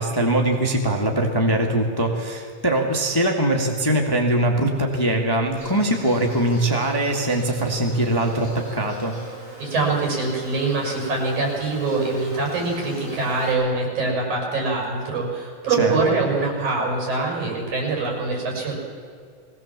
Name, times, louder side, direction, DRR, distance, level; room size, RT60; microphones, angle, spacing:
voice 1, 0.0-9.1 15.8-16.0, right 1 dB, 10° left, 2 dB, 1.3 m, -22 dB
Insect, 5.5-13.5, right 1 dB, 35° right, 5.6 m, -41 dB
voice 2, 9.6-18.8, right 3 dB, 85° right, -1 dB, 7.5 m, -24 dB
20.5 x 18.0 x 7.5 m, 2.1 s
omnidirectional pair, 3.3 m